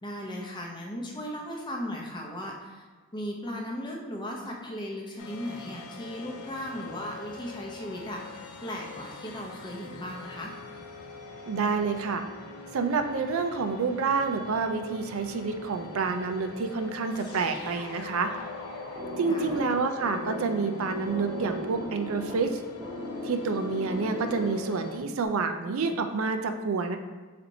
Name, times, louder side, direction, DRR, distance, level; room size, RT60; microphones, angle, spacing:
voice 1, 0.0-2.8 3.1-10.5 19.3-19.6, equal, 20° left, -1 dB, 0.6 m, -37 dB
sound 1, 5.2-25.0, left 4 dB, 90° left, 0.5 m, -44 dB
voice 2, 11.5-12.2 12.7-18.3 19.2-22.6 23.2-27.0, right 4 dB, 65° right, 7 dB, 0.4 m, -28 dB
sound 2, 17.1-22.0, left 2 dB, 50° left, 1.1 m, -45 dB
sound 3, 19.0-24.9, equal, 10° right, 0.8 m, -37 dB
4.2 x 4.1 x 2.7 m, 1.4 s
head